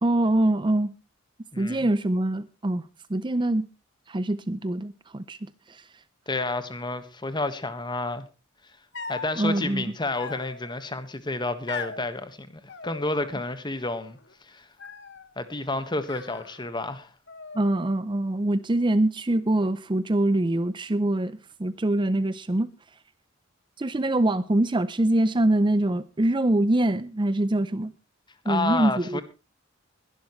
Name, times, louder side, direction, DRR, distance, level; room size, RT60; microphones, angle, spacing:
voice 1, 0.0-0.9 1.6-3.7 4.1-5.4 5.7-5.8 9.4-9.8 17.5-21.3 21.6-22.7 23.8-27.9 28.5-29.2, right 1 dB, 25° right, 0.6 m, -24 dB
voice 2, 1.5-1.9 6.3-8.3 9.1-14.7 15.4-17.1 28.4-29.2, left 2 dB, 25° left, 1.5 m, -30 dB
sound 1, 8.9-9.4 10.2-10.9 11.7-12.1 12.7-13.5 13.8-14.3 14.8-15.3 16.0-16.9 17.3-18.0, left 5 dB, 60° left, 1.7 m, -40 dB
21.0 x 12.0 x 3.1 m
head